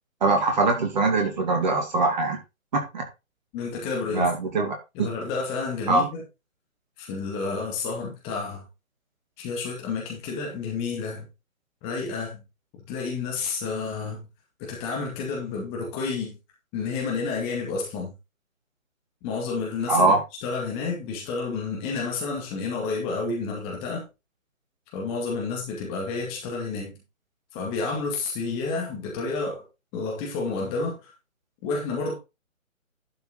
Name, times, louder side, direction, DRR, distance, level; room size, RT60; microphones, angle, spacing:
voice 1, 0.2-2.4 2.7-3.0 4.1-5.1 5.9-6.1 19.9-20.2, right 3 dB, 35° right, 2.5 m, -22 dB
voice 2, 3.5-4.3 4.9-6.2 7.0-8.6 9.4-11.3 11.8-12.4 12.9-14.3 14.6-16.4 16.7-18.1 19.2-20.2 20.4-24.0 24.9-27.0 27.5-29.6 29.9-31.1 31.6-32.1, left 4 dB, 15° left, 2.2 m, -30 dB
11.5 x 5.7 x 4.1 m
figure-of-eight pair, 145°, 41 cm